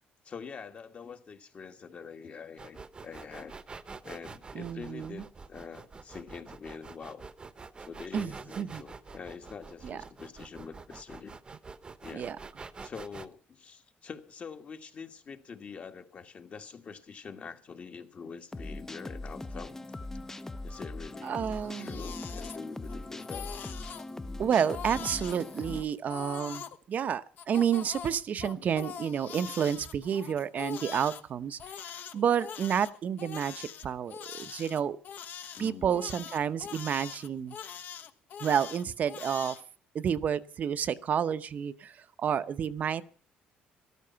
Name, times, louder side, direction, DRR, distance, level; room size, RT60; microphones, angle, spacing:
voice 1, 0.2-3.5 4.0-7.3 7.8-11.3 12.0-12.3 12.8-19.9 20.6-23.5 35.5-36.0, left 5 dB, 40° left, 7 dB, 1.6 m, -45 dB
sound 1, 2.6-13.3, right 4 dB, 25° right, 0.9 m, -46 dB
voice 2, 4.5-5.2 8.1-8.8 9.8-10.0 12.1-12.4 21.2-22.0 24.4-31.8 32.1-35.0 35.6-37.6 38.4-39.6 39.9-43.0, right 8 dB, 50° right, 12 dB, 0.8 m, -30 dB
sound 2, 18.5-25.8, left 2 dB, 15° left, 0.7 m, -40 dB
Crying sobbing, 21.5-22.9 23.2-24.0 24.5-26.8 27.4-31.2 31.6-39.6, left 8 dB, 60° left, 1.2 m, -43 dB
13.5 x 12.5 x 5.7 m, 0.43 s
cardioid pair, 115°, 4 cm